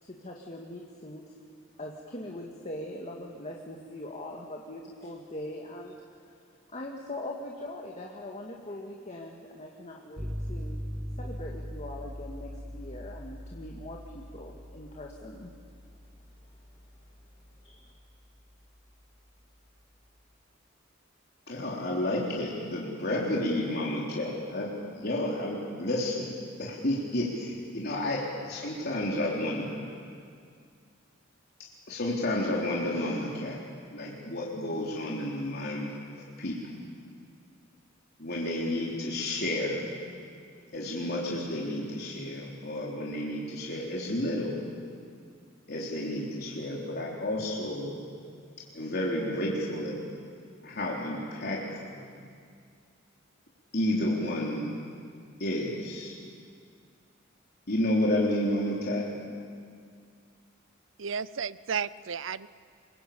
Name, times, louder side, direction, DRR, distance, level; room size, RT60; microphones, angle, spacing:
voice 1, 0.0-1.3 1.8-6.0 6.7-10.8 11.2-15.5 17.6-17.9, left 1 dB, 35° left, -1 dB, 2.1 m, -41 dB
sound 1, 10.2-20.0, equal, 30° right, 3.5 m, -41 dB
voice 2, 21.5-29.9 31.9-33.6 33.9-35.9 36.4-36.6 38.2-39.9 40.7-44.6 45.7-48.0 48.7-50.0 50.6-52.1 53.7-54.7 55.4-56.2 57.7-59.1, left 1 dB, 50° left, -4 dB, 3.7 m, -31 dB
voice 3, 61.0-62.5, right 6 dB, 70° right, 17 dB, 0.6 m, -33 dB
27.0 x 22.5 x 8.7 m, 2.2 s
head